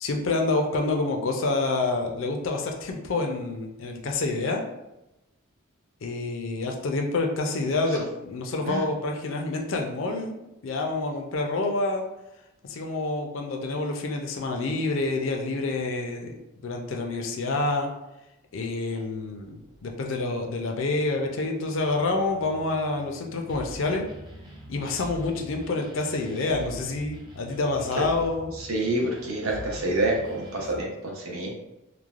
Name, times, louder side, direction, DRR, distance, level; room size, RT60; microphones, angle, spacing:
voice 1, 0.0-4.6 6.0-12.0 12.7-16.4 16.6-17.9 18.5-24.0 24.7-28.5, left 3 dB, 60° left, 3 dB, 0.4 m, -28 dB
sound 1, 19.1-30.8, equal, 20° right, 0.4 m, -45 dB
voice 2, 28.5-31.6, right 1 dB, 75° right, -1 dB, 0.7 m, -28 dB
3.1 x 2.1 x 2.4 m, 0.94 s
head